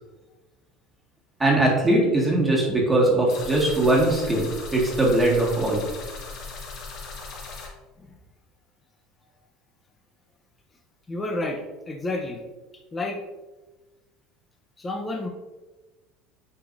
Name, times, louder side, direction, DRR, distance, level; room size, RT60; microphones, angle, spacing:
voice 1, 1.4-5.9, right 1 dB, 10° right, -3 dB, 1.8 m, -21 dB
sound 1, 3.3-7.7, left 4 dB, 55° left, 1.7 m, -38 dB
voice 2, 11.1-12.4 12.9-13.2 14.8-15.3, left 2 dB, 20° left, 1 dB, 0.8 m, -30 dB
8.4 x 5.0 x 2.6 m, 1.2 s
cardioid pair, 135°, 0 cm